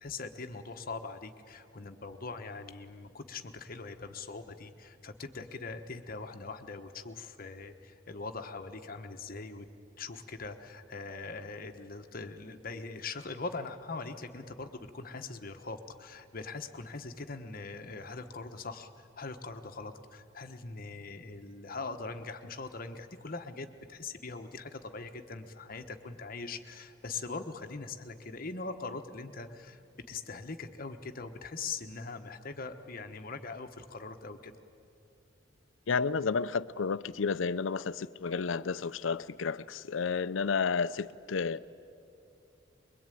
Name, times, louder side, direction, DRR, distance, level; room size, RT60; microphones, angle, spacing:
voice 1, 0.0-9.7 10.0-29.8 30.1-34.5, left 3 dB, 50° left, 7 dB, 1.3 m, -42 dB
voice 2, 35.9-41.7, left 5 dB, 85° left, 16 dB, 0.5 m, -31 dB
23.5 x 22.5 x 9.3 m, 2.6 s
head